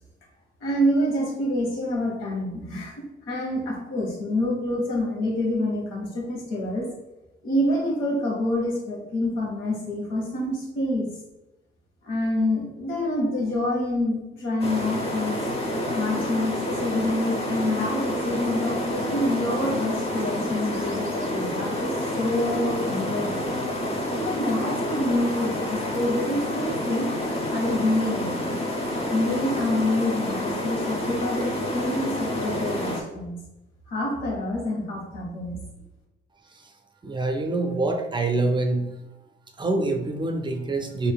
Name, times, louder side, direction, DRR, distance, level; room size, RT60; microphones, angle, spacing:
voice 1, 0.6-6.9 7.4-11.1 12.0-15.4 15.9-23.5 24.1-27.1 27.5-28.6 29.1-33.4 33.9-35.6, left 1 dB, 90° left, -2 dB, 1.2 m, -27 dB
sound 1, 14.6-33.0, left 1 dB, 30° left, 0.7 m, -28 dB
voice 2, 37.0-38.9 39.6-41.1, right 2 dB, 25° right, 4 dB, 0.4 m, -25 dB
4.9 x 2.6 x 2.2 m, 0.97 s
cardioid pair, 90°, 20 cm